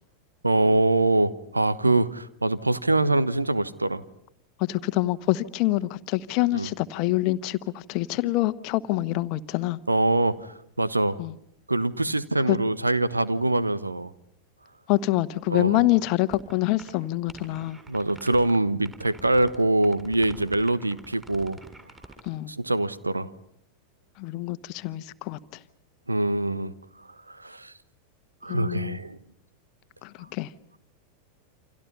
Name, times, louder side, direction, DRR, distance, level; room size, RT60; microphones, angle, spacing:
voice 1, 0.4-4.0 6.5-6.7 9.9-10.4 10.8-11.2 11.7-14.1 15.5-15.8 17.9-21.6 22.5-23.3 26.1-26.7 27.3-27.7 28.4-29.2, right 2 dB, 80° right, 15 dB, 1.2 m, -24 dB
voice 2, 4.6-9.8 11.2-11.3 12.5-12.6 14.9-17.8 22.2-22.5 24.2-25.4 28.5-29.0 30.0-30.5, left 17 dB, 40° left, 14 dB, 1.1 m, -26 dB
sound 1, 16.3-16.5 16.8-16.9 17.3-18.6 18.8-19.6 19.8-22.3, right 2 dB, 15° right, 7.9 m, -45 dB
29.0 x 27.0 x 5.6 m, 0.71 s
figure-of-eight pair, 90°, 0 cm